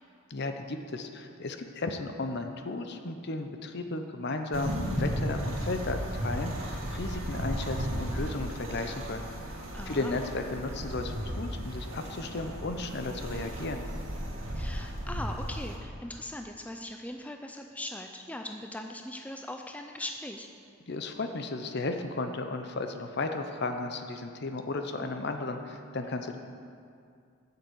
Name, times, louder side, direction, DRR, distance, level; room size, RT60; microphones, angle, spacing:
voice 1, 0.3-9.3 9.9-13.8 20.9-26.4, left 2 dB, 55° left, 6 dB, 0.7 m, -34 dB
sound 1, 4.5-15.8, equal, 80° right, 1.8 m, -35 dB
voice 2, 9.7-10.2 14.5-20.5, left 1 dB, 5° left, 4 dB, 0.4 m, -40 dB
8.3 x 6.8 x 7.9 m, 2.3 s
head